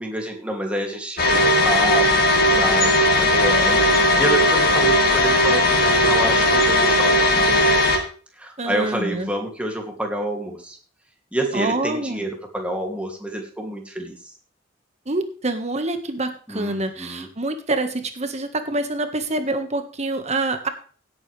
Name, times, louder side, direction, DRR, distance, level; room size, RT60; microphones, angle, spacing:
voice 1, 0.0-7.7 8.4-10.8 11.3-14.2 16.5-17.3, right 1 dB, 5° right, 1 dB, 2.7 m, -28 dB
sound 1, 1.2-8.0, left 1 dB, 55° left, 2.5 m, -17 dB
voice 2, 8.6-9.3 11.5-12.2 15.0-20.7, right 2 dB, 35° right, 7 dB, 1.6 m, -26 dB
17.0 x 9.0 x 3.4 m, 0.41 s
head